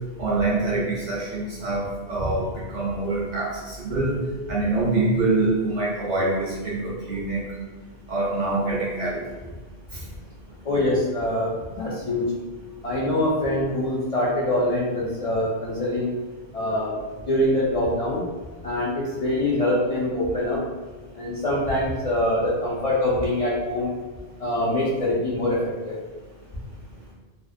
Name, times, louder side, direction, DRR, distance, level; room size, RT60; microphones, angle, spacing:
voice 1, 0.2-4.2 4.5-7.5 8.1-9.2, right 2 dB, 55° right, -5 dB, 0.6 m, -25 dB
voice 2, 10.6-12.3 12.8-16.1 16.5-17.0 17.3-18.2 18.6-20.6 21.1-23.9 24.4-26.0, left 1 dB, 55° left, -7 dB, 0.4 m, -24 dB
2.5 x 2.0 x 2.4 m, 1.3 s
omnidirectional pair, 1.1 m